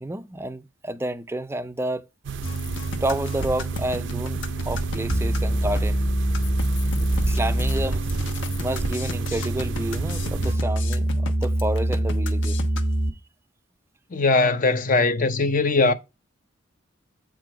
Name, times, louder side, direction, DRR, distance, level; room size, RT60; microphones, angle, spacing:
voice 1, 0.0-2.0 3.0-6.1 7.3-8.0 8.6-12.6, right 1 dB, 15° right, 0.5 m, -30 dB
sound 1, 2.2-10.5, right 4 dB, 65° right, 0.5 m, -32 dB
sound 2, 2.4-13.1, right 1 dB, 65° left, 1.2 m, -25 dB
voice 2, 14.1-15.9, left 3 dB, 45° left, 0.7 m, -20 dB
8.4 x 4.7 x 4.7 m
head